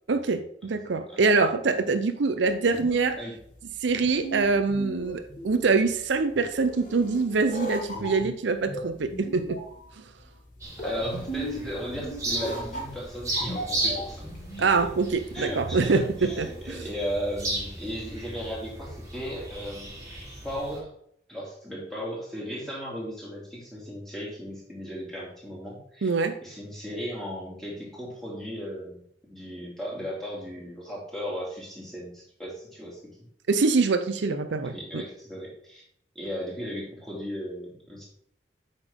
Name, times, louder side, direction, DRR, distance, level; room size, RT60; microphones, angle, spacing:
voice 1, 0.1-3.2 3.8-9.6 10.0-10.1 14.6-16.8 26.0-26.4 33.5-35.0, right 4 dB, 75° right, 9 dB, 0.5 m, -24 dB
sound 1, 2.5-15.0, equal, 45° left, 1.8 m, -37 dB
sound 2, 10.6-20.8, right 1 dB, 15° right, 1.7 m, -36 dB
voice 2, 10.8-14.7 15.3-19.9 20.4-20.9 21.3-26.1 26.4-29.0 29.3-33.0 34.6-35.8 36.1-38.0, equal, ahead, -5 dB, 2.5 m, -36 dB
8.1 x 5.4 x 3.5 m, 0.67 s
head